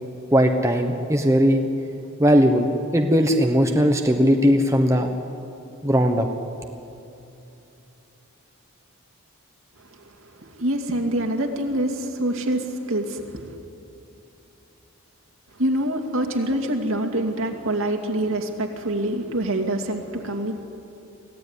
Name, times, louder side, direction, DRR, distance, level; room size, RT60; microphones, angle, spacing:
voice 1, 0.3-1.6 2.2-5.1 5.8-6.3, equal, 15° right, 3 dB, 1.1 m, -18 dB
voice 2, 10.4-13.6 15.6-20.6, right 1 dB, 65° right, 3 dB, 2.4 m, -25 dB
24.5 x 16.5 x 9.8 m, 2.8 s
head